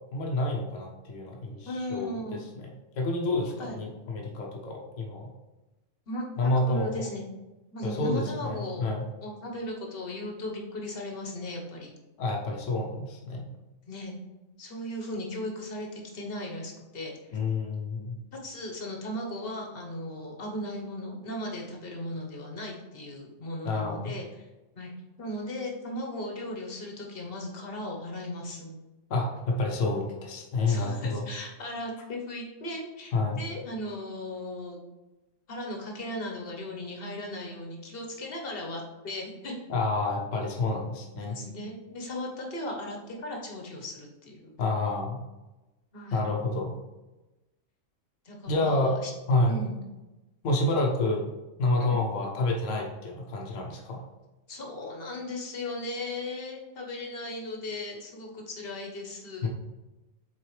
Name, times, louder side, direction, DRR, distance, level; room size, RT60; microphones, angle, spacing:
voice 1, 0.1-2.7 3.0-5.3 6.4-7.0 7.8-9.0 12.2-13.5 17.3-18.2 23.6-24.1 29.1-31.3 33.1-33.4 39.7-41.4 44.6-45.2 46.1-46.7 48.5-48.9 49.3-49.6 50.4-51.2 51.6-54.0 59.4-59.5, left 2 dB, 80° left, 0 dB, 1.2 m, -28 dB
voice 2, 1.6-2.4 3.6-3.8 6.1-7.2 7.7-8.9 9.2-11.9 13.9-14.1 14.6-17.4 18.3-24.5 24.8-24.9 25.2-28.8 30.7-34.8 35.5-39.5 41.3-44.5 45.9-46.2 48.2-49.1 49.5-49.8 51.8-52.0 54.5-59.5, left 1 dB, 50° left, 0 dB, 1.3 m, -37 dB
7.4 x 4.3 x 3.2 m, 1.1 s
omnidirectional pair, 1.3 m